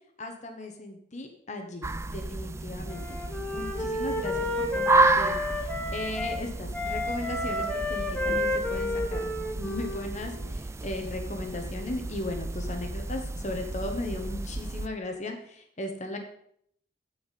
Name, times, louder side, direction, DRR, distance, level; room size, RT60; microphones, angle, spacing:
voice 1, 0.2-3.2 3.5-9.3 9.6-16.2, left 2 dB, 40° left, 4 dB, 1.3 m, -37 dB
sound 1, 1.8-14.9, right 3 dB, 15° right, 0.3 m, -31 dB
Wind instrument woodwind instrument, 2.9-6.4 6.7-10.5, left 1 dB, 5° left, 1.3 m, -31 dB
15.5 x 5.3 x 4.2 m, 0.69 s
head